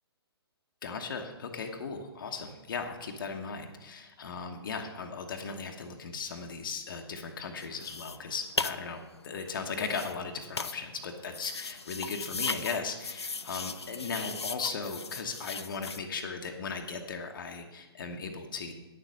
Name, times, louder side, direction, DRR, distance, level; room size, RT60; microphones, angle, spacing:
voice 1, 0.8-18.7, left 5 dB, 55° left, 4 dB, 1.2 m, -37 dB
sound 1, 7.6-16.0, left 4 dB, 85° left, 0.6 m, -37 dB
9.4 x 6.9 x 6.4 m, 1.2 s
figure-of-eight pair, 130°, 13 cm